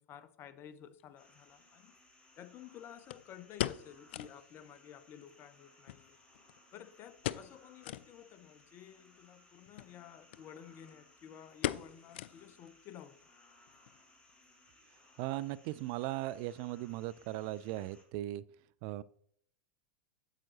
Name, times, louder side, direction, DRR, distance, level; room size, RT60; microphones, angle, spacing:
voice 1, 0.0-2.0 2.4-6.2 6.7-13.2, left 9 dB, 40° left, 13 dB, 0.7 m, -53 dB
sound 1, 1.0-1.1 3.1-4.4 4.7-4.8 5.1-5.2 5.9-6.7 7.2-7.6 7.8-8.1 8.6-8.7 9.7-9.9 10.3-10.4 10.7-11.1 11.6-12.7 13.0-13.1 13.7-14.0 14.3-14.4, left 13 dB, 65° left, 0.3 m, -39 dB
sound 2, 1.2-18.0, left 2 dB, 15° left, 2.2 m, -64 dB
voice 2, 15.2-18.4 18.8-19.0, right 16 dB, 50° right, 17 dB, 0.3 m, -38 dB
8.8 x 7.6 x 2.9 m, 0.63 s
figure-of-eight pair, 85°, 6 cm